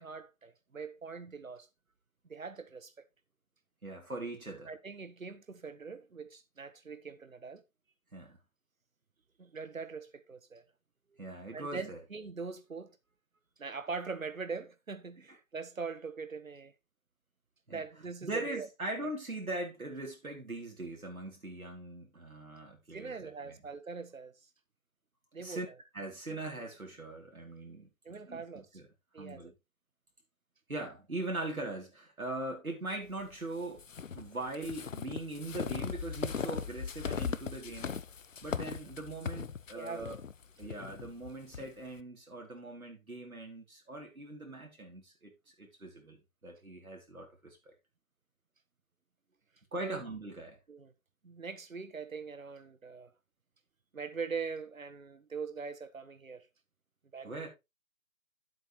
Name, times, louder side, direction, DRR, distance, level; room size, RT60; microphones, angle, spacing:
voice 1, 0.0-1.7 2.3-3.1 4.7-7.6 9.4-10.6 11.5-12.9 13.6-16.7 17.7-18.7 22.9-24.3 25.3-25.8 28.0-28.7 29.1-29.5 39.7-40.1 40.6-40.8 49.8-50.0 50.7-50.9 51.2-53.1 53.9-56.5 57.1-57.4, right 5 dB, 70° right, 1.4 m, -42 dB
voice 2, 3.8-4.7 8.1-8.4 11.2-12.0 17.7-17.8 18.2-23.6 25.4-25.7 25.9-27.9 28.3-28.8 29.2-29.5 30.7-33.8 34.1-38.0 38.4-40.2 40.6-45.3 45.6-46.2 46.4-47.7 49.7-50.6 57.2-57.5, right 2 dB, 90° right, 3.4 m, -41 dB
sound 1, 33.8-41.7, left 6 dB, 65° left, 0.7 m, -38 dB
10.0 x 7.8 x 3.1 m
figure-of-eight pair, 165°, 41 cm